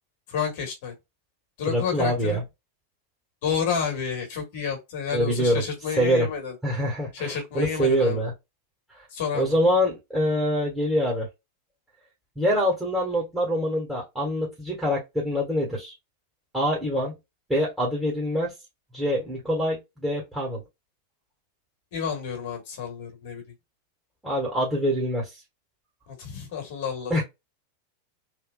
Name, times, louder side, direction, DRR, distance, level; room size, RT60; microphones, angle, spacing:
voice 1, 0.3-0.9 1.6-2.4 3.4-6.5 7.1-8.3 9.1-9.6 21.9-23.4 26.2-27.2, left 7 dB, 50° left, 1.5 m, -30 dB
voice 2, 1.7-2.4 5.1-5.6 6.0-6.3 6.6-8.3 9.3-11.3 12.3-15.9 16.5-17.1 17.5-18.5 18.9-20.6 24.2-25.3 27.1-27.2, equal, 5° right, 1.6 m, -25 dB
3.5 x 2.6 x 2.3 m
figure-of-eight pair, 90°, 0 cm